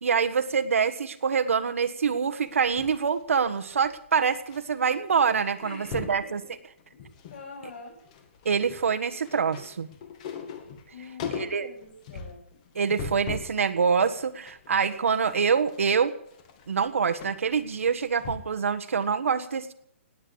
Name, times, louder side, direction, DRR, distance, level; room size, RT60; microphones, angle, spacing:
voice 1, 0.0-6.4 8.4-9.9 11.3-11.7 12.7-16.1 16.7-19.7, right 6 dB, 80° right, 7 dB, 1.5 m, -25 dB
sound 1, 2.4-4.6 4.9-5.1 5.4-6.2 6.8-7.4 7.7-13.6 14.0-18.7 19.0-19.1, left 6 dB, 30° left, 2.0 m, -40 dB
voice 2, 5.6-6.5 6.9-8.0 10.9-12.4, left 4 dB, 50° left, 1 dB, 7.2 m, -45 dB
18.5 x 8.9 x 8.6 m, 0.70 s
hypercardioid pair, 165°, 7 cm